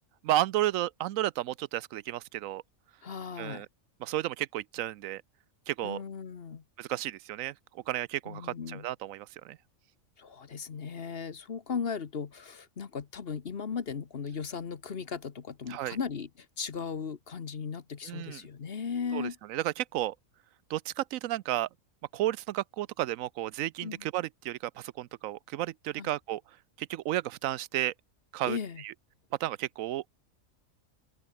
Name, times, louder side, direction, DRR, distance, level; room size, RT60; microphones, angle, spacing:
voice 1, 0.2-2.6 3.4-3.7 4.0-5.2 5.7-6.0 6.8-9.6 15.7-16.0 18.0-18.4 19.1-20.1 20.7-21.7 22.1-26.4 26.8-27.9 28.3-28.6 28.8-28.9 29.4-30.0, right 14 dB, 80° right, 1.0 m, -32 dB
voice 2, 3.0-3.7 5.8-6.6 8.3-8.9 10.2-16.3 16.6-19.4 23.8-24.1 26.0-26.1 28.4-28.8, left 6 dB, 50° left, 1.3 m, -37 dB
open air
omnidirectional pair, 1.4 m